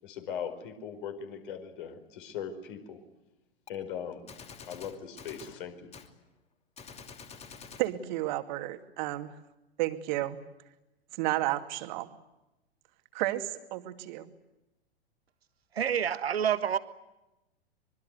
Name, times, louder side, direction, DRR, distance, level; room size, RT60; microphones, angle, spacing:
voice 1, 0.0-3.0 3.7-4.3 4.6-5.9, left 8 dB, 55° left, 7 dB, 4.8 m, -39 dB
Gunshot gunfire, 3.7-3.8 4.3-5.6 5.9-6.1 6.8-7.9, left 5 dB, 20° left, 2.8 m, -47 dB
voice 2, 7.8-9.3 9.8-10.4 11.2-12.1 13.1-14.3, right 16 dB, 45° right, 9 dB, 2.5 m, -32 dB
voice 3, 15.7-16.8, right 8 dB, 70° right, 13 dB, 1.5 m, -27 dB
25.5 x 23.5 x 9.6 m, 0.97 s
figure-of-eight pair, 100°, 32 cm